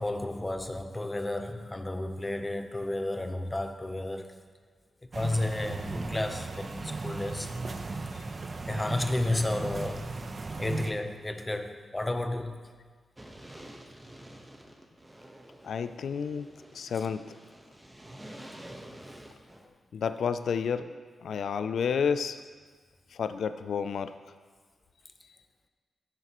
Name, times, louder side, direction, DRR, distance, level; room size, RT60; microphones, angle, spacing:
voice 1, 0.0-4.3 5.1-7.5 8.7-10.1 10.6-12.6, left 1 dB, 20° left, 7 dB, 0.8 m, -32 dB
sound 1, 5.1-10.9, right 3 dB, 45° right, 0.7 m, -36 dB
sound 2, 13.2-19.7, right 1 dB, 15° right, 1.1 m, -49 dB
voice 2, 15.6-16.5 16.7-17.2 19.9-22.4 23.1-24.1, left 6 dB, 80° left, 11 dB, 0.4 m, -30 dB
15.0 x 6.5 x 3.0 m, 1.6 s
cardioid pair, 65°, 0 cm